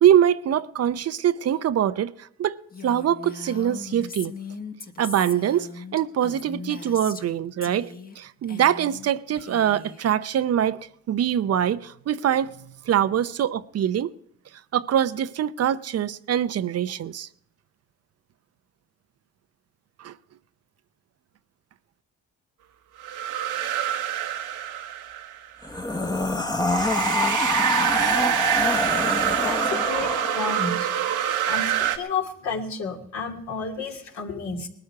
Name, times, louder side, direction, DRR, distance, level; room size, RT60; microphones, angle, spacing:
voice 1, 0.0-2.6 2.8-4.3 5.0-7.9 8.2-10.8 11.1-12.6 12.9-14.1 14.7-17.3 20.0-20.1, right 10 dB, 55° right, 0.7 m, -23 dB
Female speech woman speaking, 2.7-7.3 7.6-8.2 8.4-9.1 9.4-10.0, left 4 dB, 30° left, 1.4 m, -39 dB
sound 1, 23.0-25.5 26.7-32.0, right 11 dB, 90° right, 1.3 m, -26 dB
sound 2, 25.6-30.9, left 1 dB, 15° left, 1.1 m, -26 dB
voice 2, 29.4-30.9 31.5-34.7, left 5 dB, 65° left, 2.5 m, -31 dB
20.0 x 12.5 x 4.7 m
cardioid pair, 90°, 30 cm